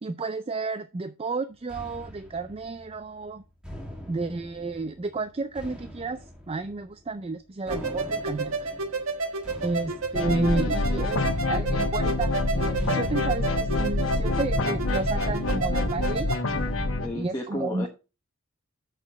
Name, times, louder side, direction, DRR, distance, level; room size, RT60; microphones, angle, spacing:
voice 1, 0.0-3.4 4.1-8.7 9.6-16.4 17.1-17.9, right 3 dB, 25° right, 11 dB, 0.4 m, -31 dB
sound 1, 1.7-17.3, equal, 5° right, 1.5 m, -44 dB
sound 2, 7.7-16.4, right 3 dB, 75° right, 1.3 m, -31 dB
voice 2, 9.6-10.0 17.0-17.9, left 1 dB, 15° left, -1 dB, 1.1 m, -34 dB
sound 3, 10.1-17.1, left 2 dB, 65° left, 1.1 m, -27 dB
6.6 x 6.2 x 5.3 m, 0.30 s
head